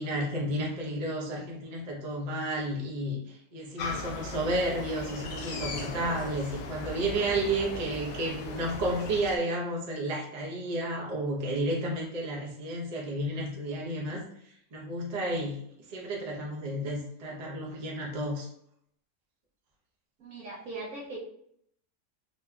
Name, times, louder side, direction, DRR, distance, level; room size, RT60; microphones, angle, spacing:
voice 1, 0.0-14.2 14.7-15.6 15.9-18.5, right 1 dB, 35° right, -3 dB, 0.7 m, -32 dB
sound 1, 3.8-9.4, left 3 dB, 85° left, 1.1 m, -38 dB
voice 2, 7.0-7.3 7.7-8.3 20.2-21.2, right 2 dB, 65° right, -3 dB, 1.0 m, -42 dB
4.1 x 2.7 x 2.3 m, 0.70 s
omnidirectional pair, 1.7 m